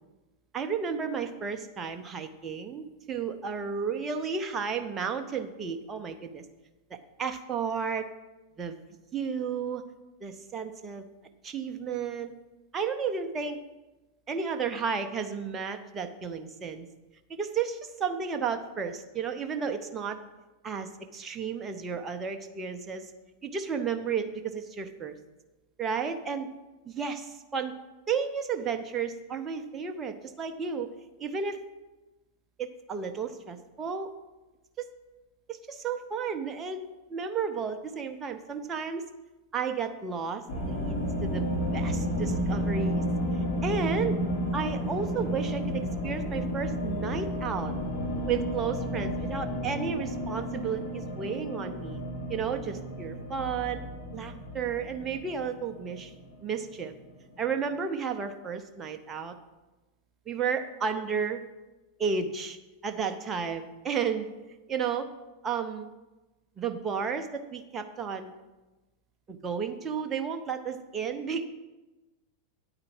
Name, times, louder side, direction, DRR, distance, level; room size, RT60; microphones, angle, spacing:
voice 1, 0.5-6.4 6.9-8.1 8.6-8.8 9.1-9.8 10.2-11.0 11.4-12.3 12.7-13.6 14.3-16.9 17.3-20.2 20.6-23.1 23.4-25.2 25.8-26.5 26.9-27.7 28.1-30.9 31.2-31.6 32.6-34.1 34.8-34.9 35.5-39.0 39.5-41.5 41.7-43.0 43.6-44.2 44.5-47.7 48.3-52.0 52.3-53.8 54.1-56.1 56.4-56.9 57.4-59.3 60.3-61.4 62.0-62.6 62.8-64.3 64.7-65.1 65.4-65.9 66.6-68.3 69.3-71.5, right 6 dB, 20° right, 6 dB, 0.8 m, -32 dB
sound 1, 40.5-57.4, equal, 60° left, 2.7 m, -32 dB
9.5 x 4.8 x 7.6 m, 1.1 s
figure-of-eight pair, 90°, 0 cm